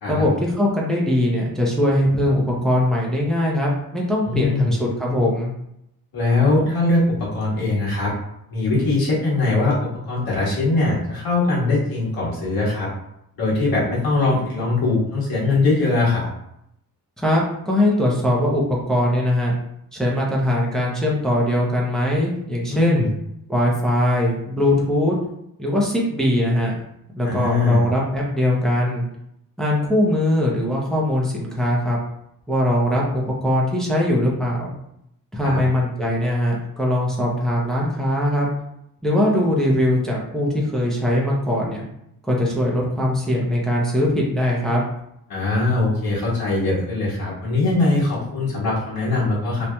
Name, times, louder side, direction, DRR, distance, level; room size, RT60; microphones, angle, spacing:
voice 1, 0.1-5.5 17.2-19.5 19.9-23.1 23.5-25.1 25.6-26.7 27.2-29.0 29.6-32.0 32.5-34.7 35.3-38.5 39.0-41.8 42.3-44.8, left 1 dB, ahead, -4 dB, 0.6 m, -21 dB
voice 2, 4.2-4.7 6.1-8.1 8.5-12.9 13.4-16.3 22.7-23.1 27.2-27.9 35.4-35.6 42.6-42.8 45.3-49.6, left 2 dB, 65° left, -7 dB, 1.4 m, -21 dB
2.8 x 2.6 x 2.2 m, 0.78 s
cardioid pair, 130°, 37 cm